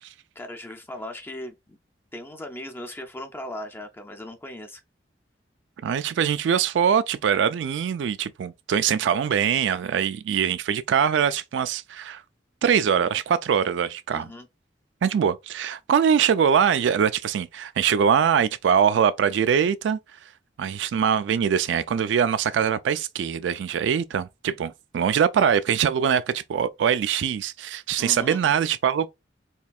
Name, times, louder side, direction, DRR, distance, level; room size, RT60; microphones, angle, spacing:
voice 1, 0.4-1.8 2.1-4.8 14.1-14.5 28.0-28.4, left 1 dB, 15° left, 0.4 m, -38 dB
voice 2, 5.8-12.2 12.6-14.3 15.0-20.0 20.6-29.1, right 8 dB, 90° right, 0.3 m, -23 dB
4.5 x 3.2 x 2.3 m
head